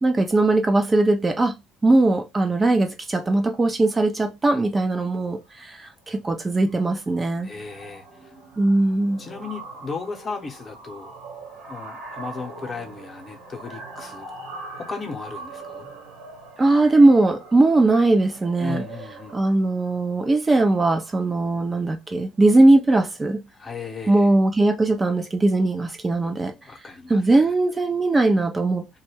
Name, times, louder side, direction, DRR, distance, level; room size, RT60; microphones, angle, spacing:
voice 1, 0.0-1.6 1.8-7.5 8.6-9.2 16.6-18.8 19.3-23.4 24.1-26.5 27.1-29.0, right 2 dB, 25° right, 0.5 m, -19 dB
sound 1, 5.5-5.8 6.1-6.3 6.6-21.5, right 3 dB, 75° right, 1.0 m, -42 dB
voice 2, 7.4-8.3 9.2-11.1 11.7-15.9 18.6-19.4 23.5-24.3 26.6-27.2, left 4 dB, 40° left, 0.8 m, -36 dB
2.2 x 2.1 x 3.3 m
hypercardioid pair, 55°, 0 cm